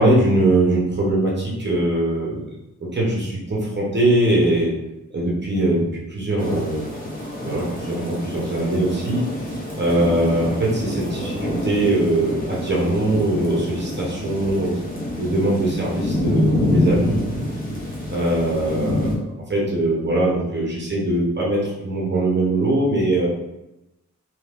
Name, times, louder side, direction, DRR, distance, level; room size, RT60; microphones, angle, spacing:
voice 1, 0.0-2.4 2.9-4.7 5.1-6.9 7.4-9.2 9.7-14.8 15.2-17.2 18.1-19.1 19.5-23.3, right 1 dB, 35° right, -4 dB, 0.8 m, -21 dB
sound 1, 6.4-19.1, left 1 dB, 30° left, 0.8 m, -27 dB
2.8 x 2.6 x 3.4 m, 0.94 s
wide cardioid pair, 180°, 30 cm